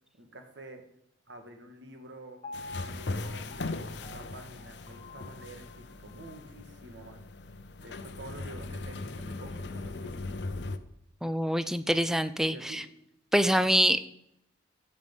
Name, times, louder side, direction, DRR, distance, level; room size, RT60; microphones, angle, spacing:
voice 1, 0.2-0.8 1.3-2.4 2.8-7.2 7.8-10.4 12.5-12.8, right 2 dB, 65° right, 5 dB, 1.8 m, -48 dB
Piano, 2.4-6.5 7.0-7.1, left 2 dB, 30° left, 1.4 m, -48 dB
sound 1, 2.5-10.8, left 3 dB, 60° left, 0.7 m, -39 dB
voice 2, 11.2-12.8 13.3-14.1, equal, ahead, 12 dB, 0.4 m, -25 dB
15.5 x 6.7 x 5.4 m, 0.78 s
head